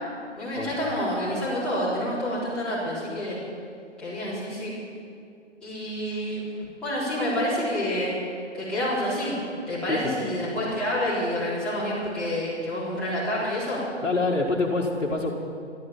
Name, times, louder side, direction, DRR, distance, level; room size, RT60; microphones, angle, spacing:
voice 1, 0.4-3.4 4.0-4.7 5.6-6.4 6.8-8.1 8.5-9.4 9.7-13.8, equal, ahead, -13 dB, 4.0 m, -28 dB
voice 2, 14.0-15.3, left 3 dB, 65° left, -5 dB, 1.9 m, -26 dB
13.0 x 12.5 x 7.2 m, 2.4 s
figure-of-eight pair, 145°, 37 cm